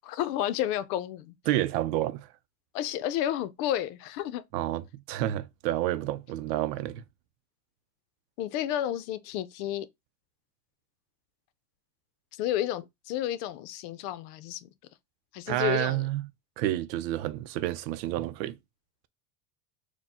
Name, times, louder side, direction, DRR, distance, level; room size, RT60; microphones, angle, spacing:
voice 1, 0.0-1.3 2.7-4.4 8.4-9.9 12.4-14.7 15.3-16.0, left 12 dB, 70° left, 0.7 m, -31 dB
voice 2, 1.5-2.3 4.5-7.0 15.5-16.2 16.6-18.6, right 14 dB, 90° right, 0.6 m, -29 dB
4.4 x 2.2 x 4.2 m
cardioid pair, 160°, 49 cm